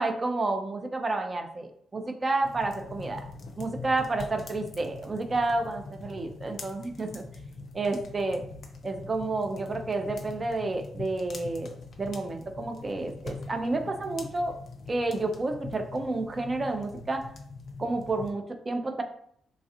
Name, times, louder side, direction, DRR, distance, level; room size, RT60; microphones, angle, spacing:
voice 1, 0.0-3.2 3.6-7.2 7.7-8.4 8.8-11.7 12.0-14.5 14.9-17.3 17.8-19.0, right 2 dB, 40° right, 5 dB, 0.5 m, -30 dB
sound 1, 2.4-18.3, left 3 dB, 60° left, 0.5 m, -43 dB
3.2 x 2.4 x 2.7 m, 0.65 s
hypercardioid pair, 40°, 0 cm